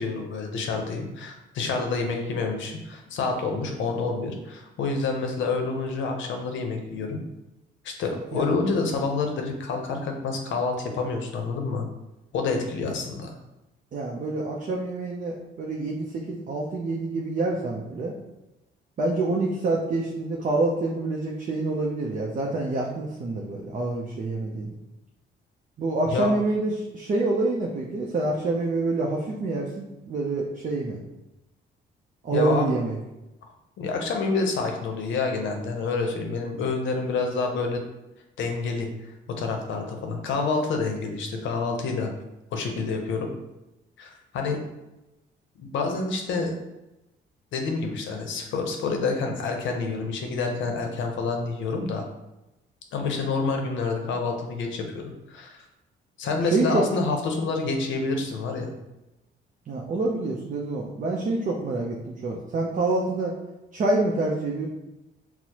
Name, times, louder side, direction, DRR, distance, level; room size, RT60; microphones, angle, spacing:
voice 1, 0.0-7.2 7.8-11.9 12.3-13.3 26.1-26.3 32.3-32.7 33.8-37.8 38.4-42.1 42.5-43.3 44.0-44.6 45.6-46.6 47.5-52.1 52.9-54.8 55.3-55.6 56.2-58.7, left 4 dB, 75° left, 3 dB, 0.6 m, -28 dB
voice 2, 8.1-8.5 13.9-18.1 19.0-24.7 25.8-31.0 32.2-33.0 56.5-56.9 59.7-63.3 63.7-64.7, right 2 dB, 40° right, -1 dB, 0.5 m, -27 dB
4.4 x 2.0 x 2.8 m, 0.97 s
cardioid pair, 90°, 20 cm